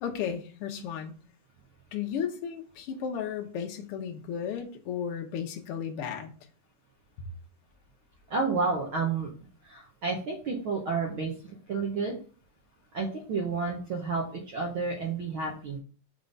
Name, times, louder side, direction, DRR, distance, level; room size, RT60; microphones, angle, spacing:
voice 1, 0.0-1.1 1.9-6.3, left 8 dB, 65° left, 3 dB, 1.5 m, -34 dB
voice 2, 8.3-9.3 9.6-11.3 11.7-12.2 12.9-15.8, right 4 dB, 65° right, 0 dB, 1.3 m, -30 dB
5.6 x 3.7 x 5.2 m, 0.40 s
omnidirectional pair, 3.5 m